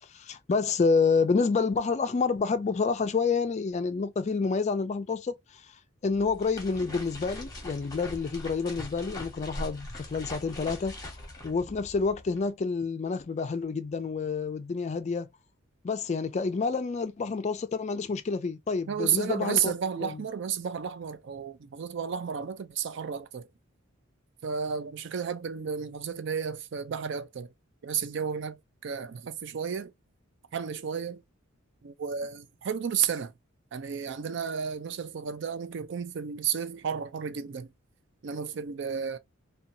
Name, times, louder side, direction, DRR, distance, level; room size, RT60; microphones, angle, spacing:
voice 1, 0.1-5.4 6.0-11.0 11.4-15.3 15.8-20.2, left 4 dB, 35° left, 0.3 m, -28 dB
sound 1, 6.0-12.4, left 1 dB, 20° left, 0.9 m, -42 dB
voice 2, 18.9-23.5 24.4-27.5 27.8-29.9 30.5-31.2 31.8-33.3 33.7-37.7 38.2-39.2, right 7 dB, 60° right, 0.4 m, -32 dB
2.6 x 2.3 x 2.6 m
head